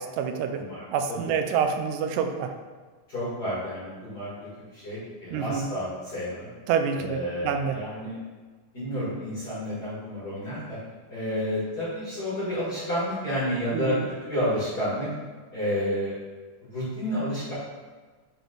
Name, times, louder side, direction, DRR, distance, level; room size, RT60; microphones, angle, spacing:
voice 1, 0.0-0.6 0.9-2.5 5.3-5.7 6.7-7.8 13.7-14.1, right 7 dB, 90° right, 6 dB, 2.2 m, -27 dB
voice 2, 0.5-1.2 3.1-4.3 4.7-6.5 6.9-8.2 8.7-10.8 11.1-15.1 15.5-16.1 16.7-17.5, equal, 35° left, -9 dB, 2.0 m, -30 dB
8.0 x 3.4 x 3.8 m, 1.4 s
omnidirectional pair, 3.7 m